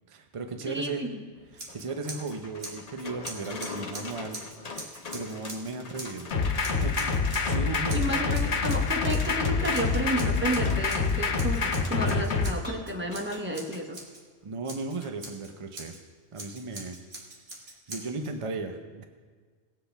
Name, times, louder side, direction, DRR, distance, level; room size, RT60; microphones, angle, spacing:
voice 1, 0.1-1.1 1.7-6.3 6.8-8.7 14.4-16.0 16.3-17.0 17.9-19.0, right 3 dB, 35° right, 5 dB, 0.7 m, -36 dB
voice 2, 0.6-1.2 7.9-14.0, equal, 10° right, 1 dB, 1.1 m, -31 dB
sound 1, 1.3-13.9 15.0-15.1 15.5-15.6, left 4 dB, 40° left, 0.9 m, -44 dB
Scissors, 1.5-2.3 2.6-6.2 6.6-7.6 7.9-9.4 9.7-14.2 14.6-16.0 16.3-18.3, right 2 dB, 65° right, 2.0 m, -43 dB
sound 2, 6.3-12.5, left 4 dB, 80° left, 1.2 m, -26 dB
19.0 x 7.8 x 3.5 m, 1.5 s
omnidirectional pair, 1.1 m